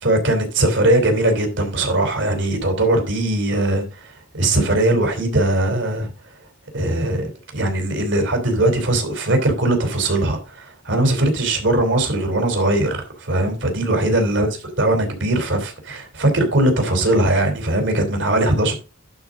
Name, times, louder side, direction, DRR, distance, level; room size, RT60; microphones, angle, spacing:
voice 1, 0.0-6.1 6.7-14.5 14.8-18.7, right 1 dB, 60° right, 3.2 m, -20 dB
11.5 x 5.0 x 3.7 m
head